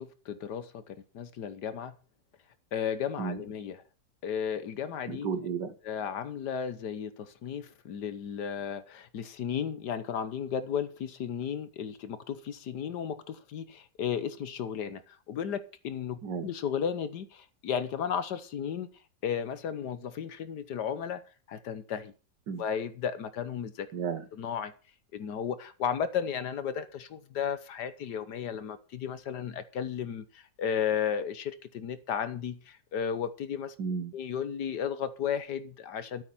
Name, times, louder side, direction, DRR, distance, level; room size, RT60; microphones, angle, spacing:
voice 1, 0.0-1.9 2.7-3.8 4.2-5.3 5.8-18.9 19.2-21.2 21.5-22.1 22.6-23.9 24.3-24.7 25.1-33.7 34.1-36.2, left 8 dB, 70° left, 1.6 m, -34 dB
voice 2, 5.1-5.8 16.2-16.5 22.5-22.6 23.9-24.2 33.8-34.1, right 6 dB, 75° right, 2.0 m, -33 dB
12.5 x 8.7 x 6.0 m
omnidirectional pair, 1.9 m